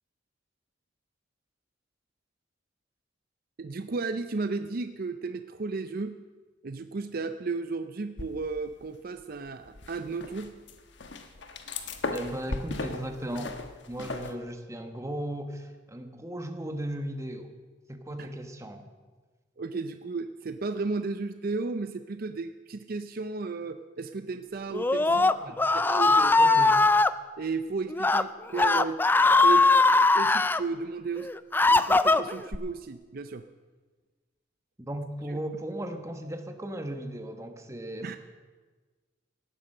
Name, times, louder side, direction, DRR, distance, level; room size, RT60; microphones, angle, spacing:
voice 1, 3.6-6.2 6.6-10.5 18.2-18.3 19.6-26.4 27.4-29.0 29.4-29.7 30.1-31.3 31.7-33.5 35.3-35.4 38.0-38.2, right 4 dB, 50° right, 9 dB, 0.5 m, -34 dB
sound 1, 8.2-8.9 9.2-14.3, left 3 dB, 65° left, 1.2 m, -37 dB
voice 2, 12.1-13.6 13.9-17.5 17.9-18.9 25.1-25.6 26.4-26.8 34.8-38.2, right 1 dB, 15° right, 6 dB, 1.2 m, -36 dB
Screaming, 24.7-27.1 27.9-28.2 28.5-30.6 31.2-32.6, left 3 dB, 10° left, 0.3 m, -21 dB
17.5 x 10.0 x 6.5 m, 1.4 s
head